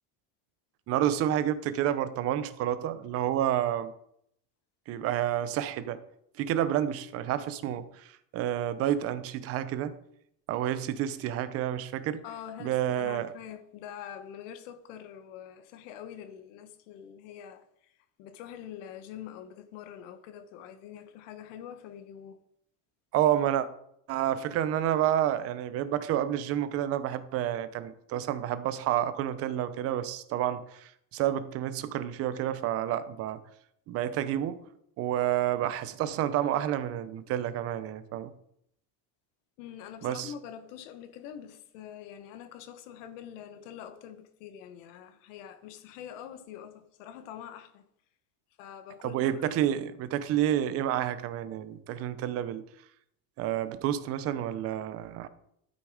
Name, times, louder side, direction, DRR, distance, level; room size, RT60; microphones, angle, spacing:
voice 1, 0.9-3.9 4.9-6.0 6.4-9.9 10.5-12.2 12.6-13.3 23.1-23.7 24.1-33.4 33.9-34.6 35.0-38.3 40.0-40.3 49.0-52.6 53.4-55.3, right 11 dB, 40° right, 0.7 m, -29 dB
voice 2, 12.2-17.9 18.2-22.4 39.6-47.9 48.6-49.7, left 9 dB, 85° left, 1.2 m, -45 dB
12.5 x 6.4 x 4.9 m
cardioid pair, 170°, 36 cm